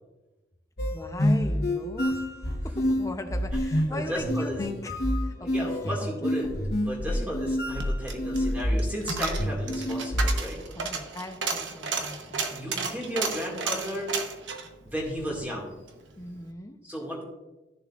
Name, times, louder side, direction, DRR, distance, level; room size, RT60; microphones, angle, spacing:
sound 1, 0.8-10.4, left 1 dB, 55° left, 1.0 m, -28 dB
voice 1, 0.9-2.3 2.6-6.3 7.1-7.4 10.7-13.0 16.2-16.8, left 1 dB, 15° left, 6 dB, 0.6 m, -40 dB
voice 2, 3.9-4.6 5.4-6.5 6.8-10.6 12.5-14.1 14.8-15.7 16.8-17.2, equal, 10° right, -3 dB, 2.0 m, -34 dB
Coin (dropping), 7.6-16.0 16.3-16.4, right 5 dB, 85° right, 1.0 m, -33 dB
14.0 x 7.0 x 2.4 m, 1.1 s
head